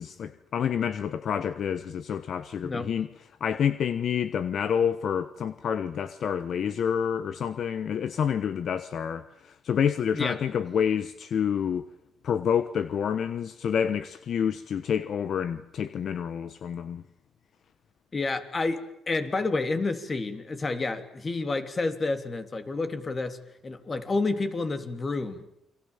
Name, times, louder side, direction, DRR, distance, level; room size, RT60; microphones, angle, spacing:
voice 1, 0.0-3.1 3.4-11.9 12.2-17.0, left 8 dB, 60° left, 1.1 m, -28 dB
voice 2, 18.1-23.4 23.6-25.6, left 3 dB, 30° left, 3.2 m, -29 dB
29.5 x 23.5 x 7.3 m
cardioid pair, 90°, 0 cm